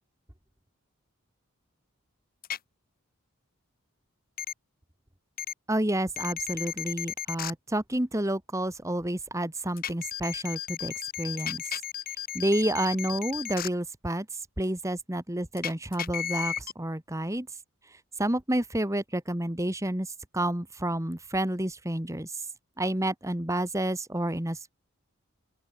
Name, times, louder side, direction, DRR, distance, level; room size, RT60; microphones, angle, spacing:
sound 1, 2.4-2.6 4.4-4.5 5.4-5.5 6.2-7.5 9.8-13.7 15.6-16.7, left 10 dB, 45° left, 2.1 m, -34 dB
voice 1, 5.7-11.6 12.3-14.3 14.6-17.5 18.2-20.1 20.3-22.3 22.8-24.7, right 1 dB, 15° right, 1.7 m, -29 dB
open air
head